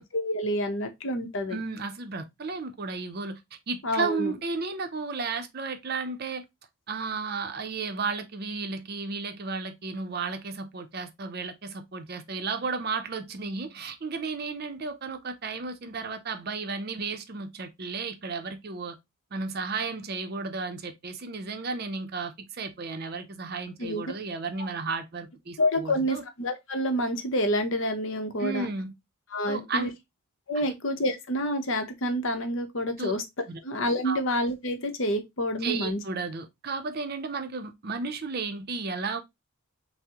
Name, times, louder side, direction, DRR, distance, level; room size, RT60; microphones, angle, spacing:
voice 1, 0.0-1.6 3.8-4.3 23.8-24.0 25.6-28.7 29.3-29.9 30.5-33.2 33.6-36.0, equal, 60° left, 0.7 m, -28 dB
voice 2, 1.5-3.4 3.7-6.4 6.9-19.0 19.3-26.2 28.4-28.9 29.5-29.9 30.5-30.8 33.0-33.1 33.5-33.6 34.0-34.2 35.6-39.2, right 4 dB, 45° right, 0.5 m, -33 dB
5.7 x 2.0 x 2.8 m
head